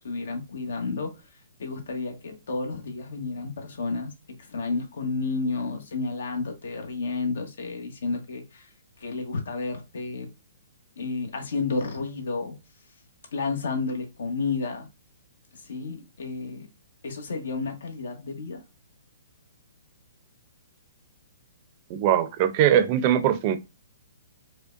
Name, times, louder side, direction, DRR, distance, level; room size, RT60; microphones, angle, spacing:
voice 1, 0.0-1.1 1.6-4.1 4.5-8.6 9.0-10.3 11.0-12.5 13.3-14.9 15.7-16.7 17.0-18.6, left 4 dB, 75° left, 1.1 m, -31 dB
voice 2, 21.9-23.6, right 10 dB, 35° right, 0.5 m, -21 dB
5.0 x 2.2 x 2.5 m
hypercardioid pair, 150°, 0 cm